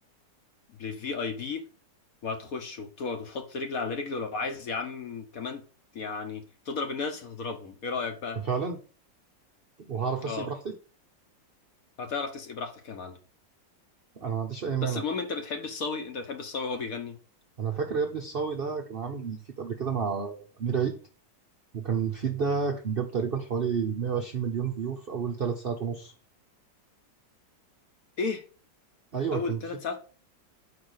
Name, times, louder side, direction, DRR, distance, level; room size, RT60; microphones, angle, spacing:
voice 1, 0.7-1.6 2.2-5.6 5.9-8.4 10.2-10.5 12.0-13.2 14.8-17.2 28.2-28.4 29.3-30.0, left 4 dB, 55° left, 1.2 m, -33 dB
voice 2, 8.4-8.8 9.8-10.8 14.2-15.0 17.6-21.0 21.7-26.1 29.1-29.6, right 6 dB, 65° right, 0.5 m, -30 dB
5.1 x 4.8 x 6.3 m
omnidirectional pair, 1.9 m